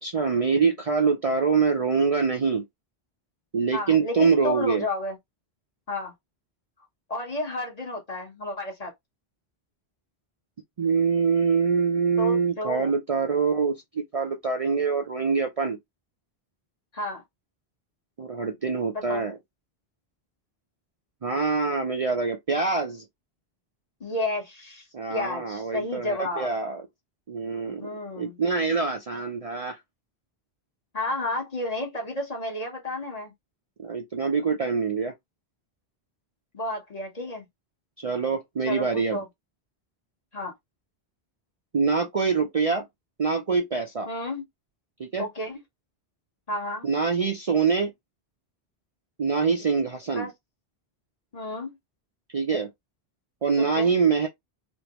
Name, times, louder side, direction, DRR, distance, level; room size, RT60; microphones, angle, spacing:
voice 1, 0.0-2.6 3.5-4.8 10.8-15.8 18.2-19.4 21.2-23.0 24.9-26.8 27.3-27.9 28.1-29.8 33.8-35.1 38.0-39.2 41.7-42.8 43.2-44.1 45.0-45.2 46.8-47.9 49.2-50.3 52.3-52.7 53.4-54.3, right 5 dB, 45° right, 0.5 m, -25 dB
voice 2, 3.7-5.2 5.9-6.1 7.1-8.9 12.2-12.9 16.9-17.2 18.9-19.2 24.0-24.8 25.1-26.5 27.7-28.4 30.9-33.3 36.5-37.5 38.7-39.3 40.3-40.5 44.1-44.4 45.2-45.6 46.5-46.9 50.1-50.3 51.3-51.8 53.6-53.9, left 2 dB, 40° left, 1.2 m, -31 dB
3.2 x 2.6 x 2.9 m
omnidirectional pair, 1.0 m